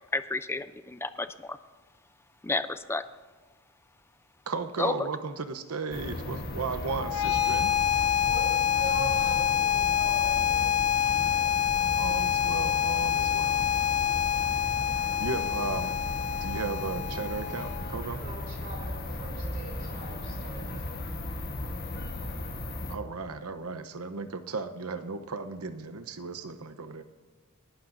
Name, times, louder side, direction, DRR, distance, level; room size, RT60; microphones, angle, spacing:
voice 1, 0.1-1.6 2.4-3.0 4.8-4.9, left 3 dB, 10° left, 12 dB, 0.4 m, -31 dB
voice 2, 4.5-7.7 12.0-13.7 15.2-15.9 16.4-18.2 22.9-27.0, right 4 dB, 90° right, 11 dB, 0.8 m, -35 dB
sound 1, 5.9-23.0, left 1 dB, 45° left, 1.3 m, -36 dB
sound 2, 7.0-18.0, left 10 dB, 75° left, 0.8 m, -27 dB
voice 3, 8.2-10.7 18.2-20.9, right 2 dB, 40° right, -1 dB, 3.3 m, -41 dB
29.0 x 11.5 x 2.6 m, 1.4 s
head